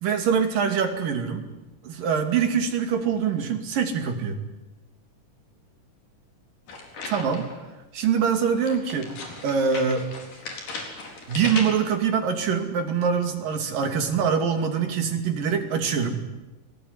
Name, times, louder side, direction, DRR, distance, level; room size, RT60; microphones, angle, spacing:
voice 1, 0.0-1.5 1.8-4.4 7.1-7.5 7.9-9.1 9.4-10.0 11.3-16.2, right 6 dB, 85° right, 6 dB, 4.3 m, -24 dB
sound 1, 6.7-7.6 8.6-12.0, left 3 dB, 75° left, 5.9 m, -37 dB
27.5 x 19.5 x 9.7 m, 1.1 s
omnidirectional pair, 3.8 m